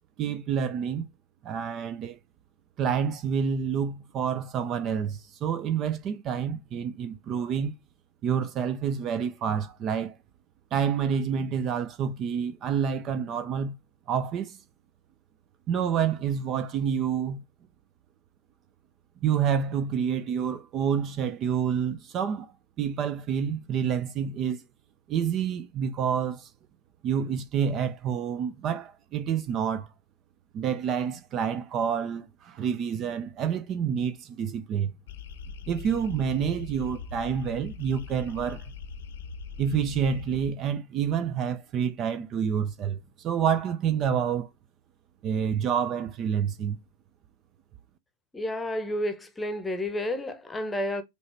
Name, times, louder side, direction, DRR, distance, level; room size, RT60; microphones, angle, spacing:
voice 1, 0.2-1.1 1.4-2.2 2.8-7.7 8.2-10.1 10.7-13.8 14.1-14.6 15.7-17.4 19.2-22.5 22.8-24.6 25.1-26.5 27.0-29.9 30.5-34.9 35.7-38.6 39.6-43.0 43.2-44.5 45.2-46.8, right 7 dB, 30° right, 0.5 m, -28 dB
sound 1, 35.1-40.5, left 5 dB, 60° left, 0.8 m, -41 dB
voice 2, 48.3-51.0, left 1 dB, 10° left, 1.0 m, -30 dB
5.3 x 3.2 x 3.0 m
figure-of-eight pair, 90°, 0 cm